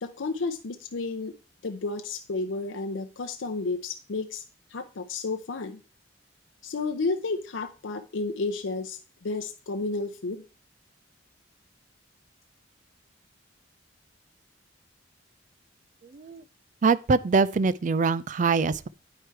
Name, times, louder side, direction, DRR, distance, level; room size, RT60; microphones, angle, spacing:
voice 1, 0.0-1.3 1.6-4.4 4.7-5.8 6.6-10.4, left 3 dB, 85° left, 0.6 m, -32 dB
voice 2, 16.1-16.4 16.8-18.9, right 4 dB, 40° right, 0.4 m, -23 dB
9.3 x 4.8 x 4.5 m
head